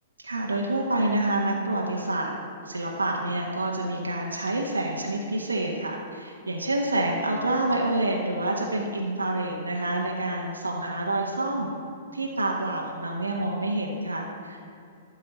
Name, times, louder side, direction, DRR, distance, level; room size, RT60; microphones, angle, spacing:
voice 1, 0.2-2.3 2.6-11.7 12.1-14.7, right 2 dB, 85° right, 0 dB, 1.3 m, -27 dB
12.5 x 4.7 x 8.6 m, 2.5 s
figure-of-eight pair, 110°, 0 cm